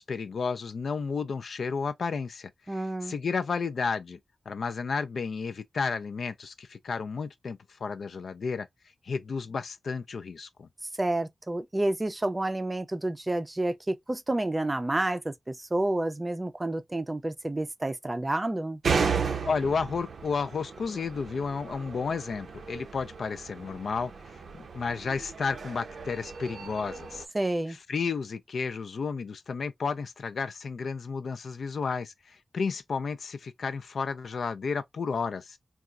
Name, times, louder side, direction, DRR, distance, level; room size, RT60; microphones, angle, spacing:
voice 1, 0.0-4.2 4.5-8.7 9.0-10.7 19.4-24.1 24.6-27.3 27.7-35.6, left 5 dB, 80° left, 0.4 m, -32 dB
voice 2, 2.7-3.1 11.0-18.8 27.3-27.8, right 1 dB, 20° right, 0.4 m, -29 dB
sound 1, 18.8-27.3, right 5 dB, 80° right, 0.5 m, -34 dB
4.0 x 2.3 x 2.3 m
wide cardioid pair, 130°, 0 cm